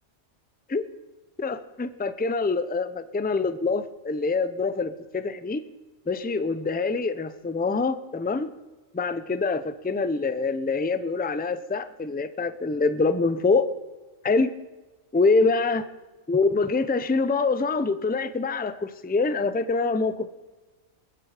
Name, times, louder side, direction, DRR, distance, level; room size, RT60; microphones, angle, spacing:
voice 1, 1.4-5.6 6.1-8.5 8.9-13.7 14.2-14.5 15.1-15.8 16.3-20.3, left 4 dB, 10° left, 13 dB, 0.4 m, -25 dB
21.5 x 9.9 x 5.0 m, 1.2 s
omnidirectional pair, 1.4 m